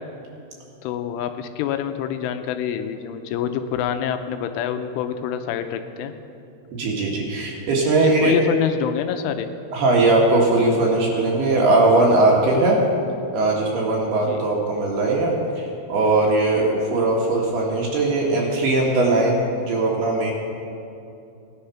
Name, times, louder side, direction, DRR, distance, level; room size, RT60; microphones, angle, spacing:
voice 1, 0.8-6.1 8.0-9.5 14.2-14.4, left 9 dB, 85° left, 8 dB, 3.1 m, -26 dB
voice 2, 6.7-8.3 9.7-12.8 13.3-20.3, right 2 dB, 65° right, -2 dB, 3.0 m, -19 dB
17.0 x 10.0 x 5.7 m, 2.6 s
omnidirectional pair, 5.6 m